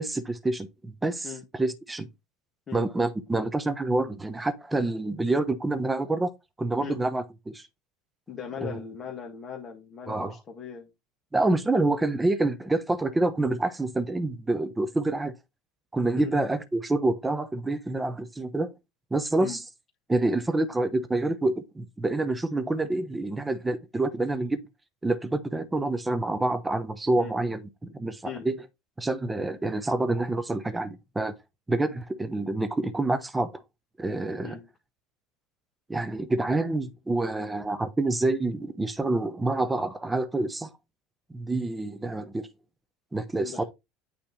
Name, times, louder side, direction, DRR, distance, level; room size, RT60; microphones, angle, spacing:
voice 1, 0.0-2.1 2.7-6.3 6.6-7.7 8.6-8.8 10.1-10.4 11.3-15.3 15.9-18.7 19.1-19.6 20.1-24.6 25.0-27.6 28.0-28.5 29.0-31.3 31.7-33.5 34.0-34.6 35.9-40.7 41.3-42.5 43.1-43.6, right 2 dB, 15° right, 1.0 m, -27 dB
voice 2, 8.3-10.9 16.2-16.4 19.4-19.6 27.2-27.4 28.2-28.5 34.4-34.7 43.4-43.6, left 7 dB, 30° left, 1.9 m, -39 dB
9.0 x 3.4 x 4.3 m
supercardioid pair, 105°, 0 cm